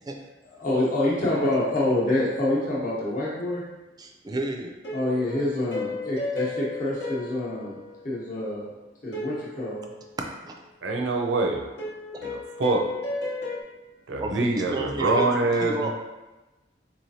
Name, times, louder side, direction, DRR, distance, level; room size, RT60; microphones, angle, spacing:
voice 1, 0.6-3.6 4.9-7.8 8.0-8.7 9.0-9.9, left 1 dB, 45° left, -6 dB, 0.9 m, -26 dB
sound 1, 1.4-2.9 4.8-8.5 9.1-10.6 11.8-13.6, left 2 dB, 80° left, 0.9 m, -35 dB
voice 2, 4.0-4.7 10.4-10.5 12.1-12.3 14.2-15.3 15.6-15.9, right 2 dB, 20° right, 2 dB, 0.4 m, -31 dB
voice 3, 10.8-11.7 12.2-12.9 14.1-15.9, right 2 dB, 90° right, 2 dB, 0.5 m, -25 dB
4.0 x 3.1 x 2.7 m, 1.1 s
head